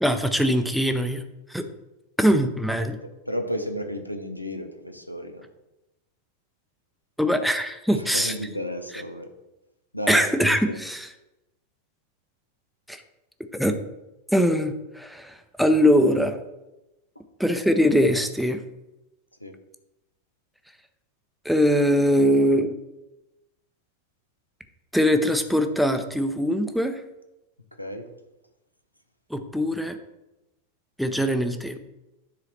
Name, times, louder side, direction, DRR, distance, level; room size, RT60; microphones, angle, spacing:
voice 1, 0.0-1.2 1.5-1.6 2.2-3.0 7.2-8.3 10.1-11.1 12.9-13.0 13.5-13.8 14.3-16.4 17.4-18.6 21.4-22.7 24.9-27.0 29.3-30.0 31.0-31.8, equal, ahead, 8 dB, 0.7 m, -22 dB
voice 2, 3.3-5.5 7.9-9.3 9.9-10.3 10.7-10.8 19.4-19.5 27.8-28.1, equal, 90° left, 6 dB, 0.8 m, -33 dB
9.8 x 4.1 x 4.2 m, 0.97 s
figure-of-eight pair, 90°, 0 cm